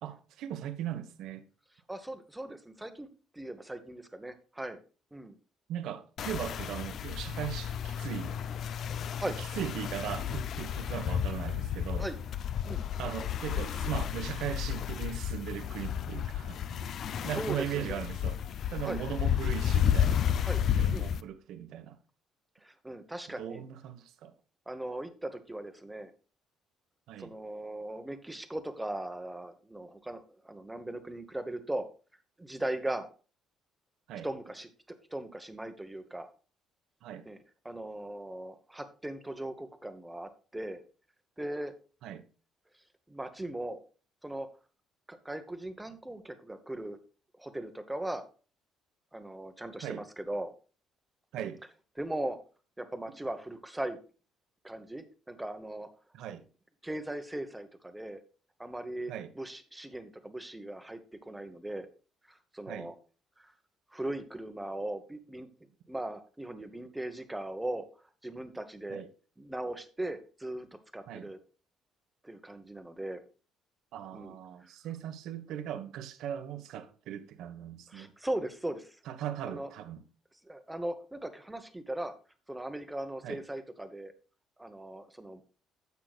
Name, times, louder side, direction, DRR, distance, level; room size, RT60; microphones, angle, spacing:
voice 1, 0.0-1.4 5.7-8.4 9.3-12.1 13.0-16.6 17.2-18.4 18.7-20.3 20.7-22.0 23.4-24.3 27.1-27.4 34.1-34.3 37.0-37.2 42.0-42.2 49.8-50.0 51.3-51.6 56.1-56.4 59.1-59.3 62.7-62.9 68.9-69.1 71.1-71.3 73.9-78.1 79.1-80.0 83.2-83.4, right 10 dB, 70° right, 1.2 m, -38 dB
voice 2, 1.9-3.1 3.3-4.8 5.1-5.4 9.2-9.4 12.0-12.2 12.7-12.8 17.2-18.0 18.9-19.0 20.4-20.6 20.9-21.1 22.6-23.6 24.7-26.1 27.2-31.9 32.4-33.1 34.2-36.3 37.3-37.4 37.6-40.8 41.4-41.7 43.1-43.8 44.2-44.5 45.1-47.0 47.4-48.2 49.1-50.5 52.0-52.4 52.8-54.0 54.6-55.9 56.8-58.2 58.6-61.9 62.3-62.9 63.4-63.5 63.9-65.5 65.9-67.8 68.2-69.0 69.4-70.7 70.9-71.4 72.2-73.2 74.1-74.7 77.9-79.0 79.5-79.7 80.4-82.1 82.5-84.1 84.6-85.4, right 1 dB, 5° right, 1.0 m, -38 dB
sound 1, 6.2-21.2, left 9 dB, 50° left, 0.5 m, -32 dB
15.5 x 6.0 x 2.4 m
cardioid pair, 155°, 0 cm